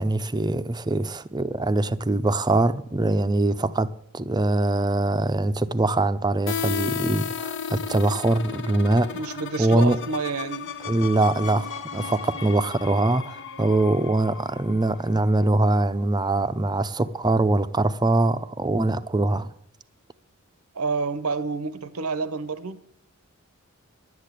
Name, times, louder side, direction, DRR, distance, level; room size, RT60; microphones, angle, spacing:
voice 1, 0.0-9.1 9.6-10.0 10.9-19.5, right 2 dB, 20° right, 0.6 m, -23 dB
sound 1, 6.5-16.0, left 6 dB, 60° left, 0.8 m, -34 dB
voice 2, 9.1-10.7 20.7-22.8, right 4 dB, 90° right, 1.0 m, -29 dB
11.5 x 8.4 x 9.0 m
head